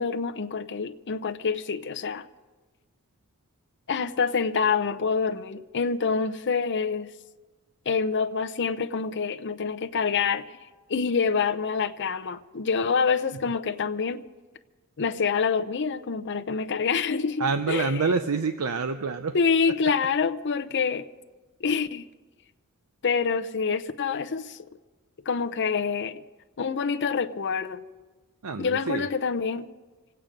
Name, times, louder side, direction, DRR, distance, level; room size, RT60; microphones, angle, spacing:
voice 1, 0.0-2.3 3.9-7.1 7.9-10.5 10.9-14.2 15.0-18.1 19.3-21.1 21.6-22.0 23.0-24.6 25.3-26.2 26.6-27.8 28.6-29.7, left 5 dB, 55° left, 0.7 m, -26 dB
voice 2, 17.4-19.4 28.4-29.1, right 4 dB, 80° right, 0.6 m, -27 dB
26.0 x 8.9 x 5.2 m
head